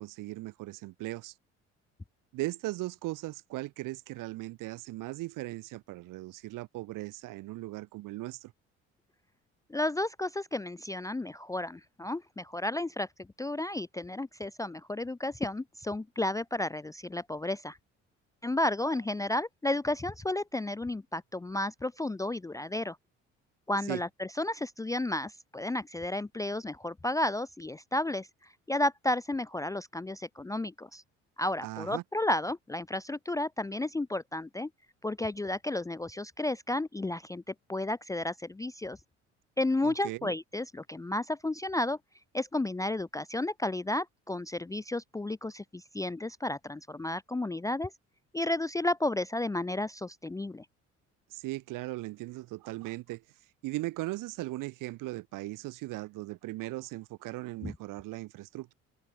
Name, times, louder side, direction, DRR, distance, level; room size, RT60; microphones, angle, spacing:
voice 1, 0.0-1.3 2.3-8.5 23.9-24.0 31.6-32.0 39.8-40.3 51.3-53.2 53.6-58.7, right 19 dB, 60° right, 3.9 m, -38 dB
voice 2, 9.7-13.1 13.4-17.8 18.4-23.0 23.7-28.3 28.7-31.0 31.4-34.7 35.0-39.0 39.6-42.0 42.3-47.9 48.3-50.6 57.6-57.7, left 1 dB, 10° left, 0.7 m, -32 dB
figure-of-eight pair, 50°, 37 cm